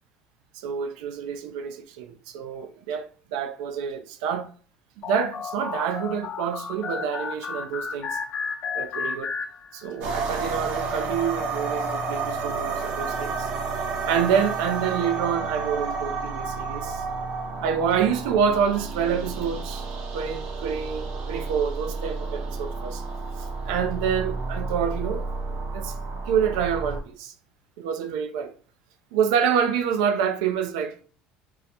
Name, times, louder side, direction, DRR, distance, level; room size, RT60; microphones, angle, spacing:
voice 1, 0.5-4.5 5.0-8.2 8.7-9.3 9.7-13.5 14.1-17.0 17.6-19.9 20.1-23.0 23.4-25.2 25.7-25.9 26.3-27.3 27.8-28.5 29.1-31.0, right 7 dB, 90° right, 0.4 m, -27 dB
sound 1, 5.0-10.1, left 5 dB, 55° left, 0.6 m, -33 dB
sound 2, 10.0-27.0, right 4 dB, 70° right, 0.8 m, -31 dB
3.7 x 2.0 x 2.9 m
supercardioid pair, 105°, 3 cm